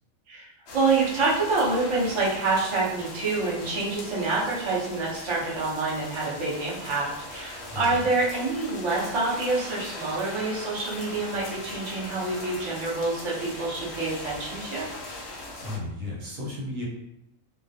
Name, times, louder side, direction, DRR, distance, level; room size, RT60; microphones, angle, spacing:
sound 1, 0.7-15.8, left 2 dB, 65° left, 0.7 m, -40 dB
voice 1, 0.7-14.8, right 3 dB, 40° right, -6 dB, 0.4 m, -27 dB
voice 2, 7.7-8.0 15.6-16.8, left 2 dB, 75° right, -3 dB, 1.1 m, -34 dB
2.3 x 2.1 x 2.6 m, 0.83 s
omnidirectional pair, 1.4 m